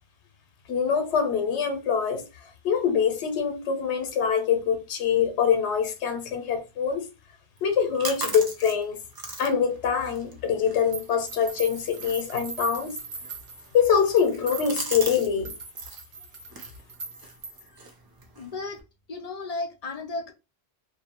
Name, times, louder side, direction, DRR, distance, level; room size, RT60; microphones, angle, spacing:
voice 1, 0.7-2.2 2.6-7.1 7.6-9.0 9.4-13.0 13.7-15.6, left 7 dB, 85° left, 0.9 m, -24 dB
sound 1, 7.6-15.3 15.6-16.1 16.5-18.8, right 3 dB, 40° right, 0.3 m, -40 dB
sound 2, 10.9-17.8, right 5 dB, 65° right, 1.0 m, -40 dB
voice 2, 18.4-18.8 19.1-20.3, left 3 dB, 45° left, 0.6 m, -34 dB
2.6 x 2.1 x 2.8 m
omnidirectional pair, 1.1 m